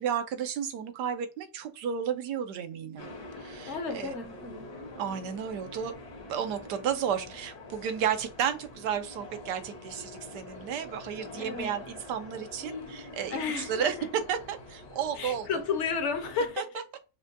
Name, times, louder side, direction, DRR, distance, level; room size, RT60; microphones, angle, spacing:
voice 1, 0.0-3.1 3.4-4.1 5.0-5.9 6.3-15.5 16.6-16.7, right 8 dB, 90° right, 1.3 m, -32 dB
sound 1, 3.0-16.5, left 2 dB, 70° left, 1.8 m, -45 dB
voice 2, 3.6-4.7 11.4-11.7 13.3-14.1 15.2-16.7, left 5 dB, 55° left, 0.9 m, -32 dB
5.9 x 2.2 x 2.6 m
omnidirectional pair, 1.8 m